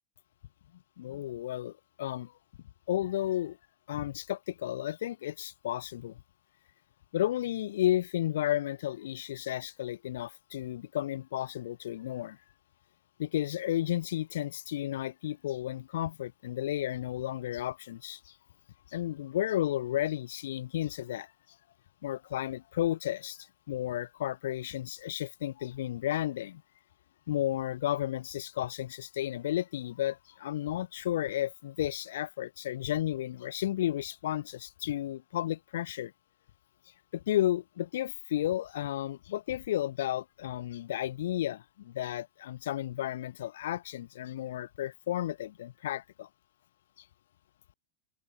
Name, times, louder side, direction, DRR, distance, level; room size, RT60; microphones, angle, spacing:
voice 1, 1.0-1.7 2.0-2.3 2.9-3.6 3.9-6.2 7.1-12.4 13.2-18.3 18.9-21.3 22.0-26.6 27.3-36.1 37.1-46.3, left 13 dB, 60° left, 0.4 m, -33 dB
figure-of-eight pair, 90°, 0 cm